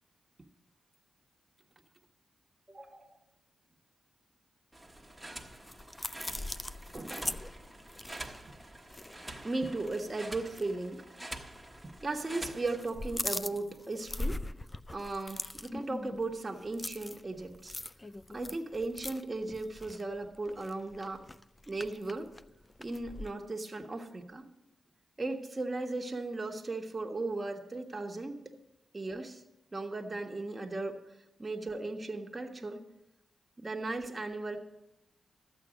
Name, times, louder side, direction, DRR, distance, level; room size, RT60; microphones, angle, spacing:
voice 1, 2.7-3.1 6.9-7.5 9.4-11.0 11.8-14.4 14.9-17.7 18.3-21.2 21.7-22.3 22.8-24.4 25.2-28.4 28.9-29.4 29.7-31.0 31.4-32.8 33.6-34.6, right 2 dB, 30° right, 2 dB, 1.4 m, -36 dB
sound 1, 4.7-12.8, right 1 dB, 10° right, 1.3 m, -47 dB
sound 2, 5.0-9.5 9.8-10.0 10.5-10.7 11.5-12.2 12.4-23.3, left 2 dB, 20° left, 0.4 m, -41 dB
13.0 x 8.4 x 5.1 m, 0.91 s
cardioid pair, 75°, 0 cm